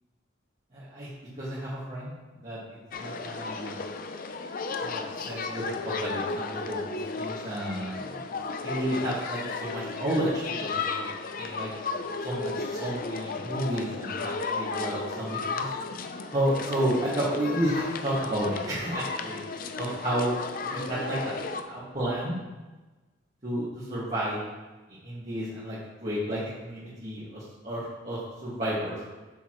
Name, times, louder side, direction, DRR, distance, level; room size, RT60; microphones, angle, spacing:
voice 1, 0.7-1.1 1.4-2.1 2.4-2.6 3.0-3.8 4.8-5.0 5.2-6.8 7.2-8.1 8.6-11.0 11.4-11.7 12.2-15.6 16.3-19.4 19.8-20.3 20.7-22.4 23.4-24.4 25.0-25.8 26.0-29.0, right 1 dB, 35° right, -11 dB, 1.8 m, -31 dB
sound 1, 2.9-21.6, left 4 dB, 45° left, 0.4 m, -34 dB
7.2 x 6.8 x 3.1 m, 1.2 s
head